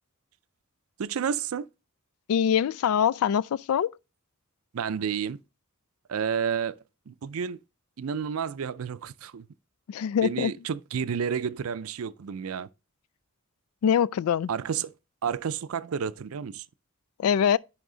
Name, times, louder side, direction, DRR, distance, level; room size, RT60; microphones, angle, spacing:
voice 1, 1.0-1.7 4.7-5.4 6.1-7.6 8.0-9.5 10.2-12.7 14.5-14.9 15.2-16.7, right 7 dB, 80° right, 0.4 m, -31 dB
voice 2, 2.3-4.0 9.9-10.5 13.8-14.5 17.2-17.6, left 8 dB, 85° left, 0.3 m, -23 dB
10.5 x 3.5 x 3.8 m
head